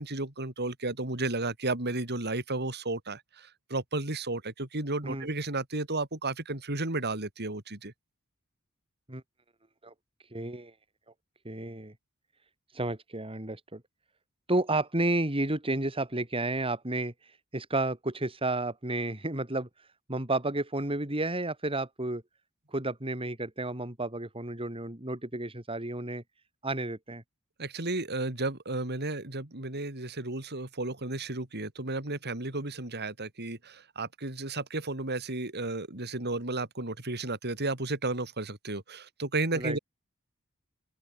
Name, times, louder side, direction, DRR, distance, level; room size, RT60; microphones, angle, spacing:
voice 1, 0.0-7.9 27.6-39.8, right 2 dB, 50° right, 4.0 m, -33 dB
voice 2, 10.3-10.7 11.4-11.9 12.7-13.8 14.5-17.1 17.5-19.7 20.1-22.2 22.7-26.2 26.6-27.2 39.5-39.8, right 2 dB, 25° right, 3.3 m, -31 dB
open air
head